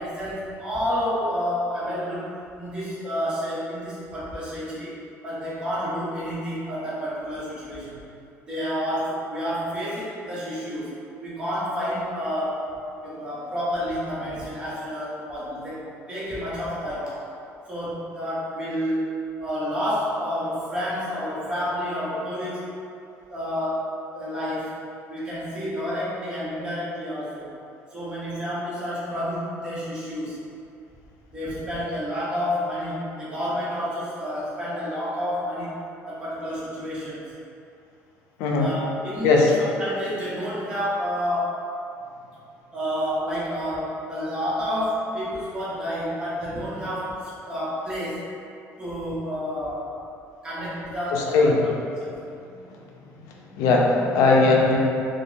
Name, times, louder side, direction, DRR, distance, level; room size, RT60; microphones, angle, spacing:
voice 1, 0.0-4.9 5.2-8.0 8.5-10.9 11.2-12.6 12.9-17.2 17.7-22.7 23.3-24.8 25.1-27.5 27.9-30.4 31.3-35.8 36.1-37.2 38.6-39.5 39.8-41.7 42.7-48.3 48.8-49.9 50.4-52.1, equal, 15° right, -10 dB, 0.9 m, -29 dB
voice 2, 38.4-38.7 39.2-39.5 51.1-51.6 53.3-54.8, left 3 dB, 85° left, -1 dB, 0.4 m, -19 dB
3.0 x 2.2 x 3.8 m, 2.6 s
cardioid pair, 165°, 6 cm